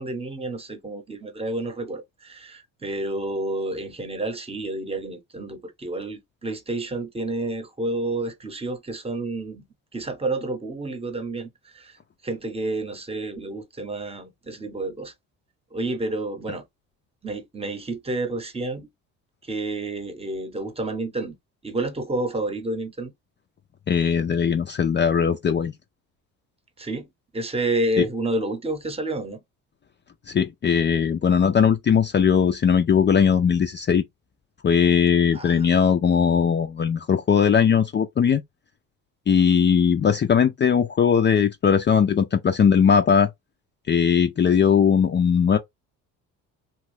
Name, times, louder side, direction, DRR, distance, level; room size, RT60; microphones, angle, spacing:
voice 1, 0.0-9.6 9.9-12.0 12.2-15.1 15.7-16.6 17.2-18.9 19.4-21.4 21.6-23.1 26.8-27.1 27.3-29.4 35.3-35.7, right 2 dB, 15° right, 1.0 m, -29 dB
voice 2, 23.9-25.7 28.0-28.1 30.3-34.0 34.6-38.4 39.3-43.3 43.9-45.6, left 7 dB, 30° left, 0.5 m, -19 dB
3.0 x 2.2 x 3.3 m
supercardioid pair, 75°, 35 cm